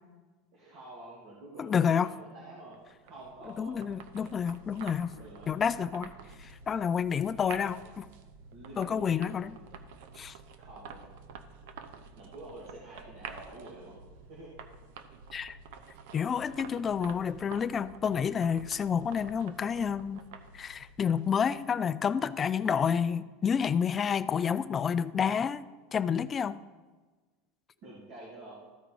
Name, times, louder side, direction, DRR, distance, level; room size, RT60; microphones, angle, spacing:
voice 1, 0.5-2.8 3.0-3.8 5.1-5.6 7.3-7.7 8.5-9.2 10.6-11.0 12.2-14.0 14.3-14.5 16.5-16.6 16.8-16.9 27.8-28.6, right 2 dB, 50° right, 2.3 m, -48 dB
voice 2, 1.6-2.1 3.6-5.2 5.5-6.1 6.4-7.8 8.8-9.6 10.2-10.3 15.3-15.6 16.1-20.2 20.5-26.6, left 7 dB, 25° left, 0.3 m, -29 dB
sound 1, 2.7-21.8, right 5 dB, 70° right, 0.7 m, -49 dB
13.5 x 5.0 x 4.7 m
supercardioid pair, 140°, 0 cm